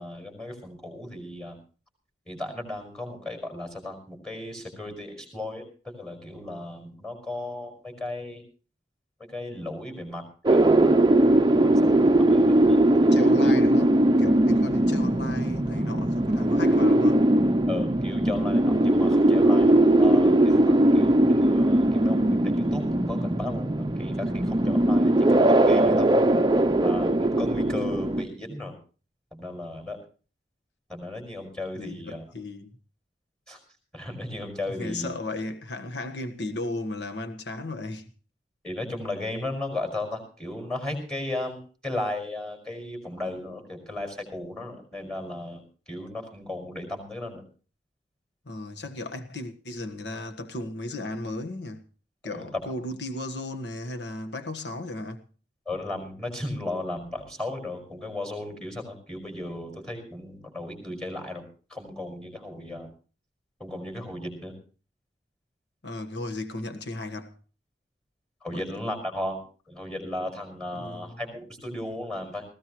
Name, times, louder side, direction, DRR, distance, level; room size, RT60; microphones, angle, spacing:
voice 1, 0.0-1.6 2.3-8.4 9.2-11.0 11.5-13.5 17.7-26.1 26.8-28.7 29.3-30.0 30.9-32.2 33.5-33.6 33.9-35.1 38.6-45.6 45.9-47.4 52.3-52.6 55.7-61.4 61.7-62.9 63.6-64.5 68.4-69.4 69.7-72.5, left 2 dB, 5° left, 5.3 m, -35 dB
sound 1, 10.5-28.2, right 1 dB, 25° right, 0.6 m, -20 dB
voice 2, 13.1-13.9 14.2-17.3 31.7-32.8 34.7-38.1 48.4-51.8 52.2-55.2 65.8-67.4 68.5-68.6 70.7-71.2, left 2 dB, 70° left, 1.5 m, -35 dB
19.0 x 16.5 x 3.1 m
head